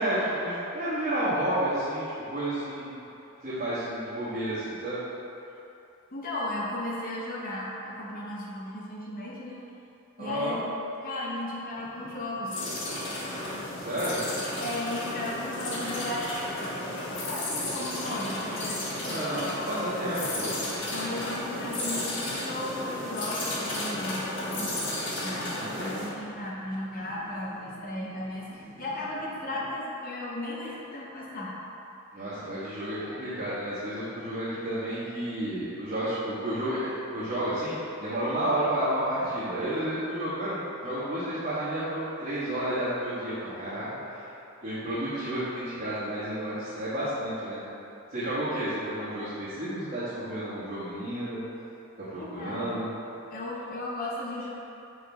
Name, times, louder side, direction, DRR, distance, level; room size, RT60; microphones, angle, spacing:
voice 1, 0.0-2.0 2.3-2.9 3.4-5.0 10.2-10.6 13.8-14.2 19.0-20.5 25.5-25.8 32.1-44.3 44.6-47.6 48.1-51.4 52.1-52.9, right 1 dB, 40° right, -16 dB, 1.5 m, -31 dB
voice 2, 6.1-9.6 10.2-10.7 11.0-12.6 12.8-13.0 14.6-16.8 17.3-19.9 20.9-24.6 25.2-31.5 52.2-52.8 53.3-54.5, left 1 dB, 40° left, -5 dB, 0.8 m, -35 dB
sound 1, 11.7-29.7, right 1 dB, 10° right, 1.4 m, -50 dB
sound 2, 12.5-26.1, left 1 dB, 60° left, 1.2 m, -33 dB
6.1 x 4.8 x 3.5 m, 2.8 s
head